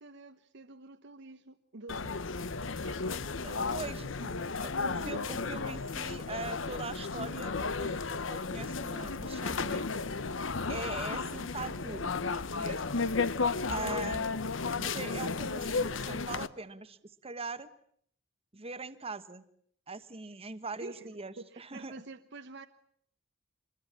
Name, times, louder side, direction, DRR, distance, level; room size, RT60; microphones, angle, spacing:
voice 1, 0.0-4.3 5.0-5.2 13.8-14.1 20.8-22.7, right 2 dB, 65° right, 9 dB, 1.1 m, -49 dB
sound 1, 1.9-16.5, left 4 dB, 75° left, 1.0 m, -34 dB
voice 2, 3.4-4.3 4.6-9.8 10.7-12.1 12.5-13.0 13.7-14.3 14.8-17.7 18.5-19.4 19.9-21.9, right 3 dB, 30° right, 11 dB, 1.3 m, -42 dB
25.0 x 22.0 x 8.7 m, 0.64 s
head